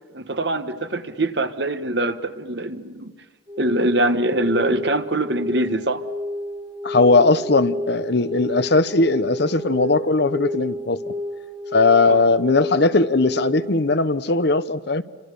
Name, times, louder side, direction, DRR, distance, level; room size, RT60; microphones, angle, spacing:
voice 1, 0.1-3.1 3.6-6.0 12.0-12.3, right 1 dB, 55° right, 10 dB, 1.3 m, -23 dB
sound 1, 3.5-13.9, left 1 dB, 20° right, 1.9 m, -31 dB
voice 2, 6.8-11.0 11.7-15.0, left 3 dB, 55° left, 13 dB, 0.8 m, -18 dB
28.5 x 26.0 x 6.7 m, 1.3 s
head